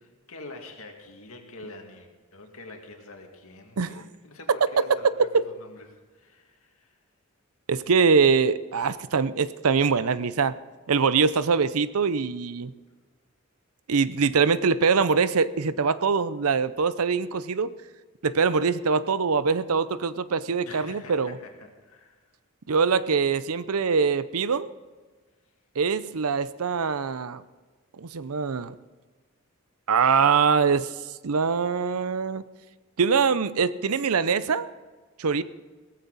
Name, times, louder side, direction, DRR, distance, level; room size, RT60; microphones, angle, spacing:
voice 1, 0.0-5.9 6.1-7.0 20.6-22.3, left 3 dB, 75° left, 2 dB, 2.4 m, -45 dB
voice 2, 7.7-10.6 10.9-12.7 13.9-17.7 18.2-21.4 22.7-24.7 25.8-27.4 28.0-28.8 29.9-30.9 31.2-32.4 33.0-34.7 35.2-35.4, right 5 dB, 80° right, 16 dB, 0.6 m, -23 dB
17.0 x 14.5 x 4.1 m, 1.4 s
head